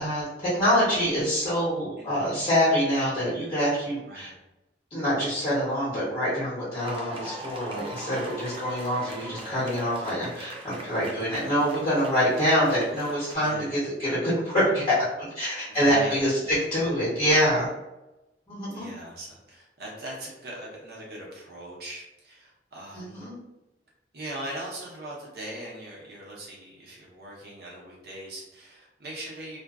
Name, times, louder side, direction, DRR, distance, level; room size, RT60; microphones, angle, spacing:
voice 1, 0.0-4.3 4.9-17.7 18.5-18.9 22.9-23.3, equal, 30° left, -12 dB, 1.0 m, -25 dB
sound 1, 6.8-13.3, right 1 dB, 30° right, 0.4 m, -40 dB
voice 2, 8.7-9.5 11.0-11.3 13.4-13.7 15.7-16.9 18.7-23.3 24.1-29.6, right 1 dB, 60° right, -4 dB, 0.8 m, -40 dB
2.5 x 2.1 x 2.4 m, 0.97 s
head